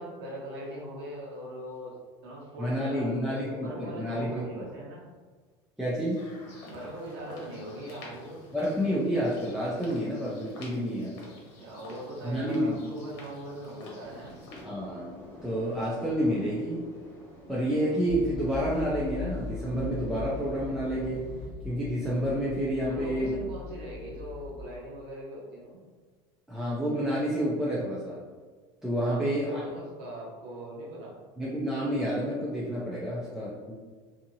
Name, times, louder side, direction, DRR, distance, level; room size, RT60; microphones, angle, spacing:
voice 1, 0.0-2.0 2.2-5.0 6.6-8.4 11.6-14.3 22.8-25.8 29.0-31.1, right 1 dB, 85° right, -4 dB, 1.0 m, -40 dB
voice 2, 2.6-4.7 5.8-6.3 8.5-11.2 12.2-12.8 14.6-16.8 17.5-21.3 21.6-23.4 26.5-28.2 28.8-29.6 31.4-33.8, equal, 5° right, -9 dB, 0.5 m, -29 dB
sound 1, 6.2-14.7, left 2 dB, 70° left, 0.9 m, -49 dB
sound 2, 14.0-21.5, left 1 dB, 20° left, 1.1 m, -49 dB
sound 3, 18.1-24.6, left 3 dB, 50° right, 0.8 m, -40 dB
2.7 x 2.7 x 2.7 m, 1.4 s
supercardioid pair, 125°, 14 cm